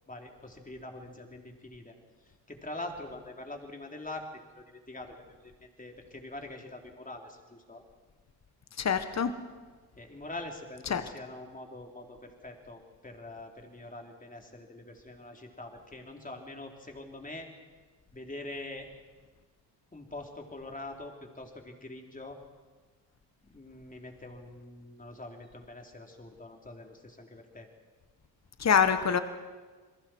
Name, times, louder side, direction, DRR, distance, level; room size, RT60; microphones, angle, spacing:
voice 1, 0.1-1.9 2.2-7.8 10.0-17.5 18.1-18.9 19.9-22.4 23.5-27.7, left 2 dB, 15° left, 2 dB, 4.0 m, -44 dB
voice 2, 8.8-9.3 10.9-11.0 28.6-29.2, left 7 dB, 35° left, 10 dB, 1.6 m, -25 dB
28.5 x 22.0 x 4.7 m, 1.4 s
hypercardioid pair, 55°, 49 cm